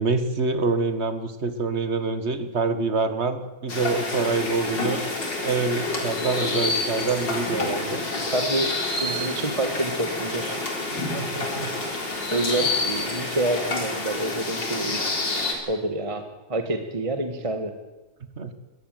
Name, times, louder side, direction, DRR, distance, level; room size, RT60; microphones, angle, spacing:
voice 1, 0.0-5.0 5.4-8.1 10.9-11.7 18.4-18.5, right 4 dB, 40° right, 10 dB, 1.7 m, -26 dB
sound 1, 3.7-15.5, left 2 dB, 80° left, 4.4 m, -28 dB
voice 2, 8.3-8.7 9.0-10.6 12.3-15.0 15.7-17.7, right 2 dB, 20° right, 7 dB, 1.5 m, -28 dB
21.0 x 14.5 x 9.2 m, 1.1 s
omnidirectional pair, 1.9 m